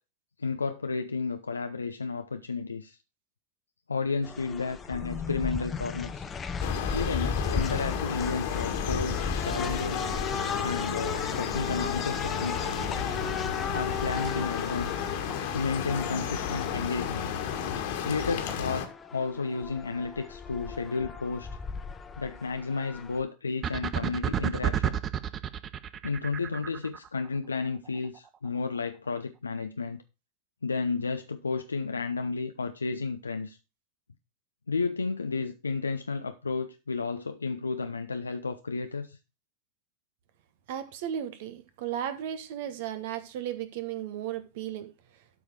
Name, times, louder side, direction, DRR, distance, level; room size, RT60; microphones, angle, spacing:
voice 1, 0.4-3.0 3.9-6.3 6.9-10.1 10.6-12.7 13.7-15.0 15.5-17.3 18.0-18.9 19.1-21.5 22.2-25.0 26.0-30.0 30.6-33.6 34.7-39.2, left 4 dB, 75° left, 0.6 m, -32 dB
sound 1, 4.2-23.2, left 5 dB, 20° left, 0.9 m, -36 dB
sound 2, 6.6-18.9, left 8 dB, 50° left, 1.7 m, -33 dB
sound 3, 23.6-27.1, right 9 dB, 25° right, 0.6 m, -30 dB
voice 2, 40.7-44.9, right 10 dB, 50° right, 1.3 m, -35 dB
12.5 x 4.9 x 4.7 m
figure-of-eight pair, 90°, 0 cm